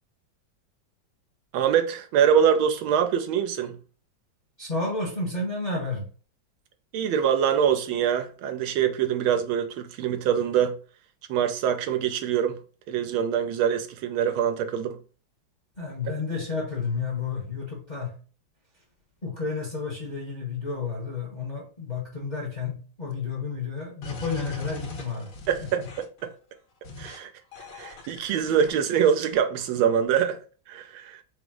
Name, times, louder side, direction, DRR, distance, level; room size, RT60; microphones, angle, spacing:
voice 1, 1.5-3.8 6.9-10.8 11.3-12.6 12.9-15.0 25.5-26.3 27.0-27.3 27.7-30.4 30.7-31.2, right 8 dB, 90° right, 1.5 m, -24 dB
voice 2, 4.6-6.0 15.8-18.1 19.2-25.3 25.8-25.9, left 4 dB, 30° left, 0.8 m, -31 dB
sound 1, 24.0-26.2 26.8-27.2 27.5-29.4, left 3 dB, 65° left, 1.5 m, -40 dB
4.9 x 2.0 x 4.5 m
omnidirectional pair, 2.2 m